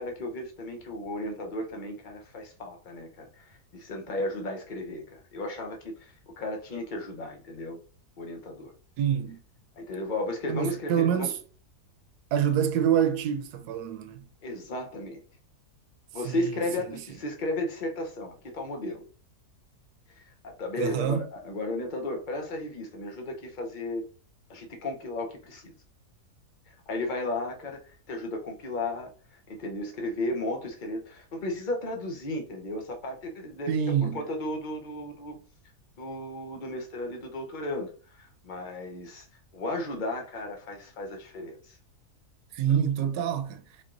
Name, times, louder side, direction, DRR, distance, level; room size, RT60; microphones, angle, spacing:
voice 1, 0.0-7.8 8.2-8.7 9.8-11.3 14.4-15.2 16.1-19.1 20.1-24.0 24.5-25.7 26.7-33.7 34.1-35.3 36.0-39.3 39.5-41.8, left 1 dB, 40° left, 0.9 m, -34 dB
voice 2, 9.0-9.4 10.5-11.4 12.3-14.2 16.2-16.5 16.9-17.0 20.8-21.3 33.7-34.2 42.5-43.6, right 8 dB, 80° right, 1.1 m, -26 dB
3.9 x 3.0 x 3.7 m
omnidirectional pair, 1.7 m